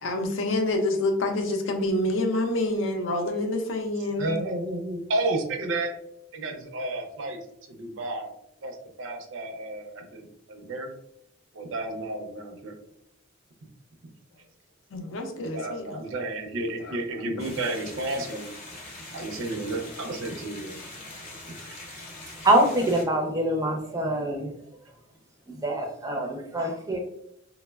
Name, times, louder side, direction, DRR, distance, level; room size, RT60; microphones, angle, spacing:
voice 1, 0.0-4.4 14.9-16.0 16.8-16.9, left 2 dB, 70° left, 4 dB, 0.5 m, -27 dB
voice 2, 4.2-5.9 6.3-7.4 7.7-8.3 8.6-10.9 11.5-12.7 15.3-18.5 19.1-20.8, right 2 dB, 70° right, 4 dB, 0.5 m, -32 dB
sound 1, 17.4-23.0, left 2 dB, 35° left, 0.6 m, -42 dB
voice 3, 22.4-24.5 25.6-27.0, right 1 dB, 15° right, 1 dB, 0.4 m, -24 dB
3.1 x 2.0 x 2.2 m, 0.77 s
head